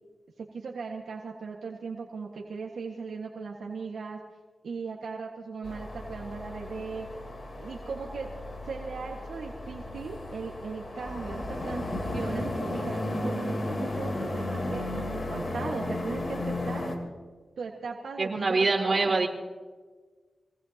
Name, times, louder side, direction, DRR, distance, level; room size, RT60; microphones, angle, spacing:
voice 1, 0.4-4.2 4.6-7.1 7.6-8.3 8.6-16.8 17.6-19.2, right 4 dB, 85° right, -1 dB, 1.7 m, -38 dB
sound 1, 5.6-17.0, left 1 dB, 40° left, 3.5 m, -34 dB
voice 2, 18.2-19.3, right 3 dB, 45° right, 0 dB, 4.4 m, -25 dB
25.5 x 19.0 x 3.0 m, 1.4 s
cardioid pair, 65°, 0 cm